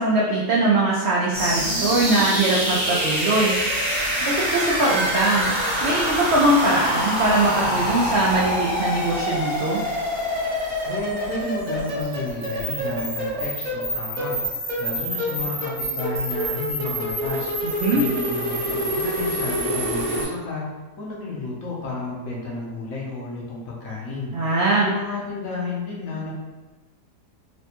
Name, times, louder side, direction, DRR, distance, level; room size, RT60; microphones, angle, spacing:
voice 1, 0.0-3.5 4.2-5.5 5.8-9.8 17.6-18.0 24.3-24.9, right 2 dB, 80° right, -5 dB, 0.6 m, -21 dB
sound 1, 1.3-20.2, equal, 30° right, 0.9 m, -26 dB
voice 2, 10.8-14.4 14.8-17.5 17.9-20.7 21.0-24.5 24.8-26.3, left 3 dB, 65° left, -3 dB, 1.0 m, -32 dB
4.1 x 2.2 x 2.8 m, 1.2 s
omnidirectional pair, 1.7 m